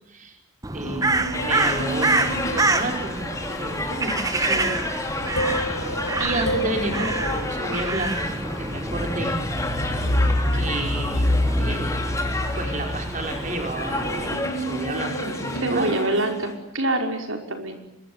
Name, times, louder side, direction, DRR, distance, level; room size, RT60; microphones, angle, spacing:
Crow, 0.6-14.3, right 2 dB, 15° right, 1.5 m, -28 dB
voice 1, 0.7-4.8 5.1-5.4 6.2-9.3 9.8-10.0 10.5-11.3 11.6-11.9 12.5-15.9, right 1 dB, 35° right, 3 dB, 4.9 m, -31 dB
sound 1, 0.8-3.5 5.1-8.1 9.5-16.8, equal, 80° left, 5.2 m, -28 dB
sound 2, 1.3-16.5, left 2 dB, 15° left, 3.4 m, -31 dB
voice 2, 15.6-17.8, right 1 dB, 70° right, 4 dB, 5.3 m, -25 dB
25.5 x 22.5 x 9.7 m, 0.87 s
head